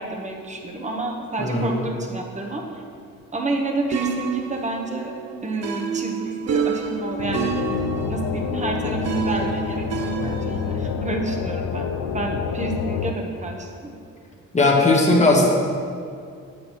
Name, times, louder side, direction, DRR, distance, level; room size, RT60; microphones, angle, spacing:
voice 1, 0.0-2.8 3.3-5.1 5.4-7.5 8.1-13.9, right 2 dB, 25° right, 1 dB, 1.1 m, -29 dB
voice 2, 1.4-1.8 14.5-15.5, left 2 dB, 25° left, -1 dB, 1.4 m, -17 dB
sound 1, 3.9-10.8, right 6 dB, 55° right, 0.7 m, -29 dB
sound 2, 7.2-13.1, left 7 dB, 85° left, 0.5 m, -28 dB
7.9 x 7.8 x 3.1 m, 2.3 s
cardioid pair, 90°, 30 cm